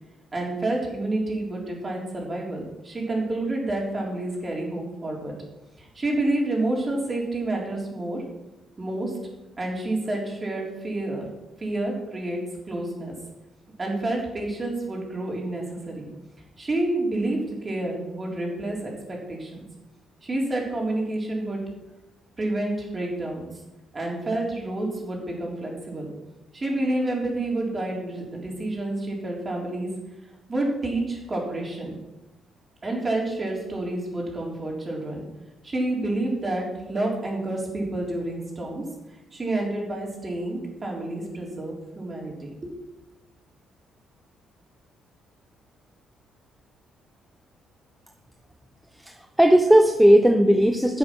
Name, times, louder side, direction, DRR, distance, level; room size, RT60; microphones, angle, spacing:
voice 1, 0.3-5.3 5.8-8.2 8.8-9.1 9.6-11.3 11.6-12.4 12.7-13.1 13.8-16.1 16.6-19.6 20.2-21.6 22.4-23.5 23.9-26.1 26.5-29.9 30.5-31.9 32.8-35.2 35.6-38.8 39.3-42.5, right 2 dB, 25° right, -1 dB, 3.9 m, -29 dB
voice 2, 49.0-51.0, right 1 dB, 5° right, 4 dB, 0.9 m, -17 dB
11.0 x 7.7 x 6.2 m, 1.0 s
cardioid pair, 95°, 0 cm